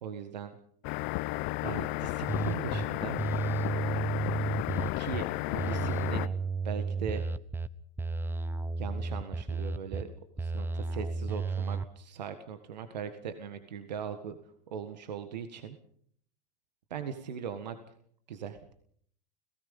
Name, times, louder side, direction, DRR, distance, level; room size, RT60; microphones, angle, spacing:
voice 1, 0.0-0.6 1.6-3.2 5.0-6.3 6.6-7.3 8.8-10.1 10.4-14.4 14.7-15.8 16.9-17.8 18.3-18.6, right 7 dB, 85° right, 9 dB, 1.7 m, -39 dB
sound 1, 0.8-6.3, left 20 dB, 55° left, 0.9 m, -33 dB
sound 2, 2.3-2.8 3.2-5.2 5.6-7.7 8.0-10.0 10.4-11.9, right 4 dB, 10° right, 1.1 m, -32 dB
29.5 x 17.5 x 5.4 m, 0.63 s
hypercardioid pair, 95°, 21 cm